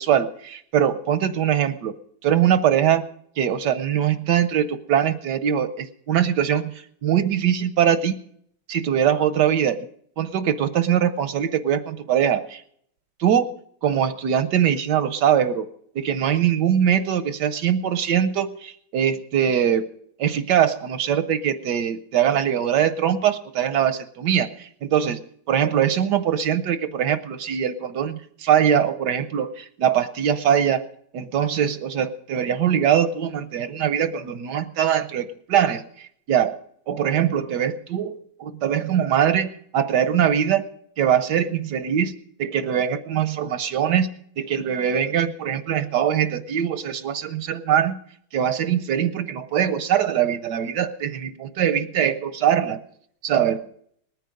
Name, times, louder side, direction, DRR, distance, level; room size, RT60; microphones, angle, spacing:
voice 1, 0.0-1.9 2.2-3.0 3.4-6.7 7.0-8.2 8.7-9.8 10.2-12.6 13.2-13.5 13.8-15.7 15.9-19.8 20.2-25.2 25.5-30.9 31.1-36.6 36.9-40.7 41.0-44.1 44.4-48.0 48.3-52.8 53.2-53.7, right 9 dB, 70° right, 12 dB, 1.1 m, -22 dB
20.0 x 9.4 x 5.2 m, 0.65 s
omnidirectional pair, 2.3 m